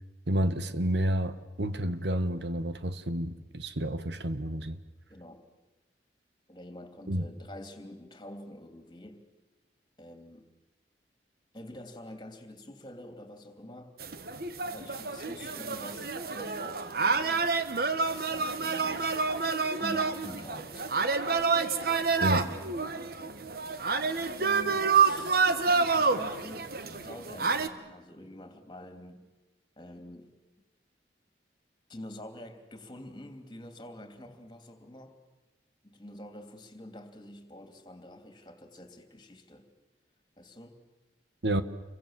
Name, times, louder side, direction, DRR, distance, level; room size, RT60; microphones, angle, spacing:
voice 1, 0.3-4.8 7.1-7.2 22.2-22.5 41.4-41.6, right 1 dB, 75° right, 1.4 m, -30 dB
voice 2, 5.1-5.4 6.5-9.2 10.0-10.5 11.5-14.0 14.6-17.5 18.1-19.2 19.8-20.9 22.3-22.6 24.0-29.2 29.8-30.3 31.9-35.1 35.8-39.7 40.4-40.8, left 1 dB, 25° left, 2.9 m, -47 dB
sound 1, 14.0-27.7, right 4 dB, 55° right, 1.4 m, -28 dB
28.5 x 23.5 x 7.5 m
head